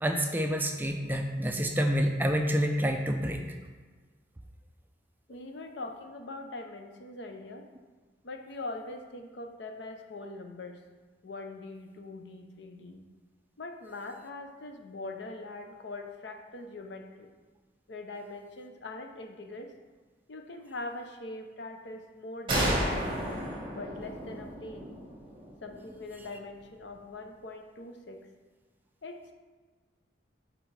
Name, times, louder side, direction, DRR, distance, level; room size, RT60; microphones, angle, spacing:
voice 1, 0.0-3.4, equal, 10° right, 3 dB, 0.4 m, -28 dB
voice 2, 5.3-7.7 8.2-10.8 11.2-13.0 13.6-17.3 17.9-19.8 20.3-23.2 23.7-24.9 25.6-28.2 29.0-29.3, left 2 dB, 70° left, 5 dB, 0.6 m, -42 dB
sound 1, 22.5-26.0, right 1 dB, 25° right, 1.3 m, -32 dB
9.6 x 3.7 x 3.3 m, 1.4 s
head